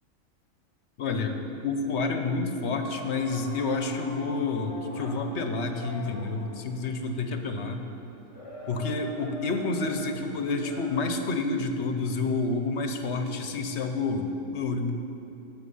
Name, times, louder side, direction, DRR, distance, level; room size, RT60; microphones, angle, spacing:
voice 1, 1.0-7.8 8.7-14.9, left 3 dB, 65° left, 6 dB, 1.2 m, -29 dB
sound 1, 2.7-11.1, equal, 30° left, 1.1 m, -43 dB
16.5 x 6.9 x 5.5 m, 2.7 s
omnidirectional pair, 1.3 m